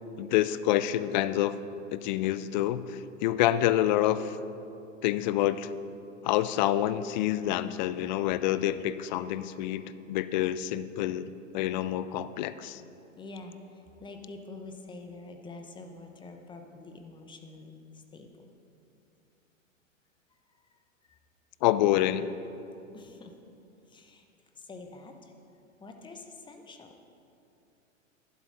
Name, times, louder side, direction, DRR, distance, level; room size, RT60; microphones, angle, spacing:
voice 1, 0.2-1.6 1.9-4.4 5.0-5.7 6.2-11.3 11.5-12.8 21.6-22.3, left 13 dB, 35° left, 14 dB, 0.4 m, -27 dB
voice 2, 13.2-18.5 20.6-20.8 21.1-21.2 22.9-23.4 23.9-24.3 24.5-25.3 25.8-26.9, left 3 dB, 10° left, 5 dB, 0.9 m, -46 dB
11.5 x 11.5 x 4.2 m, 2.7 s
figure-of-eight pair, 105°, 39 cm